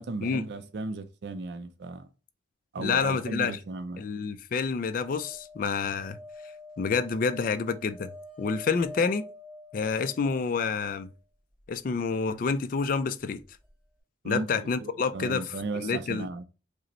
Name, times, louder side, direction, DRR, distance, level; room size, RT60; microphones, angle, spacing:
voice 1, 0.0-2.1 2.7-4.0 14.2-16.4, right 3 dB, 55° right, 0.4 m, -36 dB
voice 2, 2.8-3.6 4.0-6.2 6.8-8.1 8.4-9.3 9.7-11.1 11.7-13.4 14.2-16.3, left 5 dB, 45° left, 0.3 m, -28 dB
sound 1, 4.9-11.1 13.4-13.5 13.7-13.8, left 1 dB, 10° left, 1.1 m, -47 dB
5.0 x 2.0 x 2.9 m
head